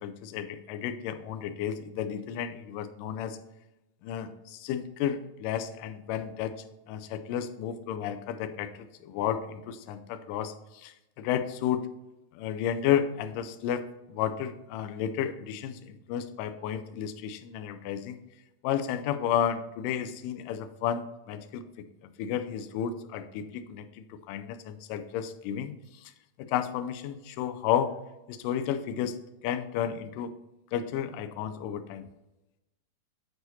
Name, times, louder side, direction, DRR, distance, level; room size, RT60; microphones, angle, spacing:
voice 1, 0.0-3.4 4.0-6.6 6.9-11.9 12.4-18.2 18.6-21.6 22.2-23.9 24.3-25.7 26.4-27.9 28.3-29.2 29.4-30.3 30.7-32.1, left 9 dB, 80° left, 9 dB, 2.0 m, -32 dB
7.8 x 4.7 x 4.1 m, 0.96 s
omnidirectional pair, 4.2 m